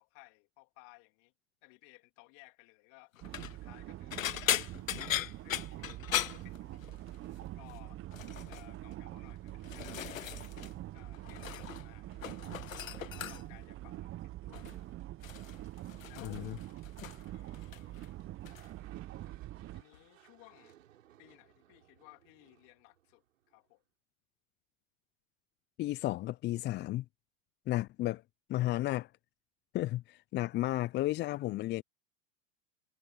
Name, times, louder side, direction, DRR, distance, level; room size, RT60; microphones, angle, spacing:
voice 1, 0.0-1.3 1.6-3.1 3.5-4.6 5.4-6.9 7.5-8.0 8.5-10.5 10.9-12.1 12.8-14.7 16.1-16.4 17.3-18.3 19.7-20.8 21.2-23.8, left 29 dB, 50° left, 3.3 m, -59 dB
sound 1, 3.2-3.5 4.1-7.2 7.4-7.8 8.1-8.6 9.3-10.7 11.0-11.9 12.1-13.6 14.5-14.8 15.2-17.3 17.5-18.1 18.4-18.7 19.9-20.0, left 11 dB, 85° left, 0.7 m, -38 dB
sound 2, 3.2-19.8, right 15 dB, 35° right, 1.1 m, -45 dB
voice 2, 16.2-16.6 25.8-27.0 27.7-28.2 28.5-29.1 29.7-31.8, left 16 dB, 30° left, 0.5 m, -33 dB
sound 3, 18.4-23.7, right 12 dB, 75° right, 4.8 m, -64 dB
hypercardioid pair, 95°, 39 cm